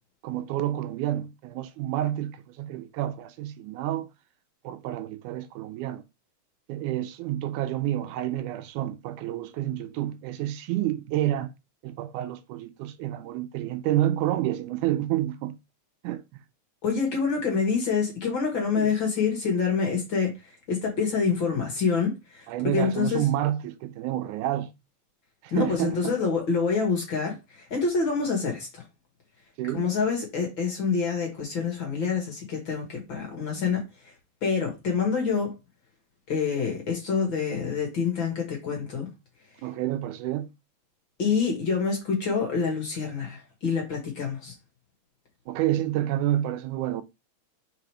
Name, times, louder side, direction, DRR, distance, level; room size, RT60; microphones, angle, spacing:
voice 1, 0.2-4.1 4.6-6.0 6.7-11.5 11.8-15.6 16.0-16.4 18.8-18.9 22.5-24.7 25.4-26.1 29.6-29.8 39.6-40.5 45.5-47.0, right 13 dB, 80° right, 2.0 m, -29 dB
voice 2, 16.8-20.4 20.7-22.5 22.7-23.3 25.5-28.8 29.7-33.8 34.4-35.5 36.3-39.1 41.2-44.5, left 5 dB, 45° left, 2.2 m, -26 dB
4.9 x 4.1 x 4.9 m
omnidirectional pair, 3.6 m